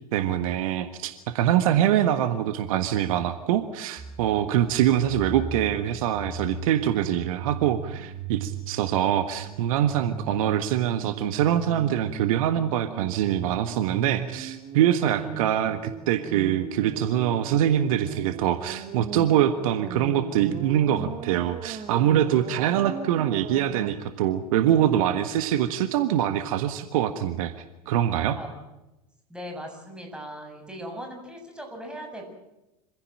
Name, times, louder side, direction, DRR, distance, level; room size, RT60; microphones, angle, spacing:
voice 1, 0.1-27.5 27.8-28.3, right 11 dB, 60° right, 10 dB, 1.5 m, -24 dB
voice 2, 1.7-2.1 15.0-15.5 28.3-28.6 29.3-32.3, equal, 5° right, 3 dB, 7.5 m, -39 dB
sound 1, 4.0-23.9, right 6 dB, 35° right, 1.8 m, -38 dB
26.0 x 16.0 x 8.9 m, 0.97 s
figure-of-eight pair, 80°, 20 cm